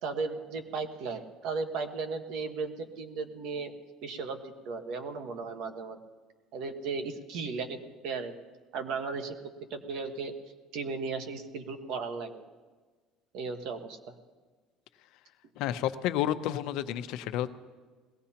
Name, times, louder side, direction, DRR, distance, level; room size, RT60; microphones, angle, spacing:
voice 1, 0.0-3.7 4.0-6.0 6.5-7.8 8.0-8.3 8.7-9.3 9.7-10.3 10.7-12.4 13.3-14.1, right 4 dB, 70° right, 6 dB, 1.4 m, -35 dB
voice 2, 15.6-17.5, left 12 dB, 70° left, 11 dB, 0.7 m, -30 dB
21.0 x 17.0 x 2.9 m, 1.4 s
cardioid pair, 130°, 0 cm